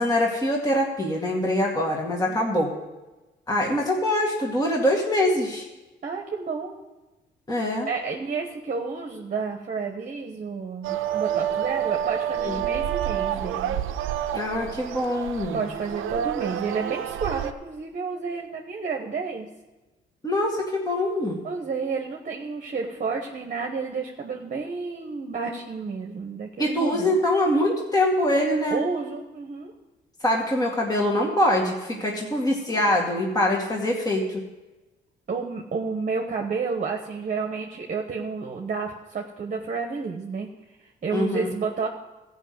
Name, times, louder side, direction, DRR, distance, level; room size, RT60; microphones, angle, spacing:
voice 1, 0.0-2.7 3.5-5.6 7.5-7.9 12.4-12.6 14.3-15.6 20.2-21.4 26.6-28.8 30.2-34.4 41.1-41.5, left 1 dB, 20° left, -2 dB, 2.0 m, -24 dB
voice 2, 6.0-6.7 7.9-13.8 15.5-19.5 21.4-27.2 28.7-29.7 35.3-40.5 40.8-41.9, right 5 dB, 40° right, 2 dB, 1.1 m, -31 dB
sound 1, 10.8-17.5, right 10 dB, 85° right, 0.6 m, -28 dB
14.5 x 5.6 x 7.9 m, 1.1 s
cardioid pair, 90°, 20 cm